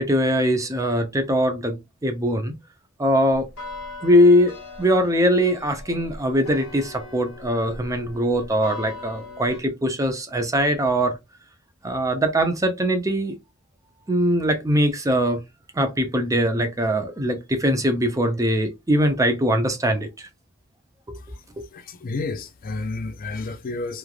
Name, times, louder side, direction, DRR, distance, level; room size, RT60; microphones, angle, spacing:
voice 1, 0.0-2.5 3.0-3.5 4.0-4.5 4.8-11.2 11.8-13.4 14.1-15.4 15.8-20.3, equal, 15° right, 0.5 m, -21 dB
sound 1, 3.3-9.6, left 2 dB, 75° left, 0.9 m, -40 dB
voice 2, 21.7-24.0, left 3 dB, 40° left, 0.4 m, -31 dB
3.1 x 2.4 x 2.4 m
head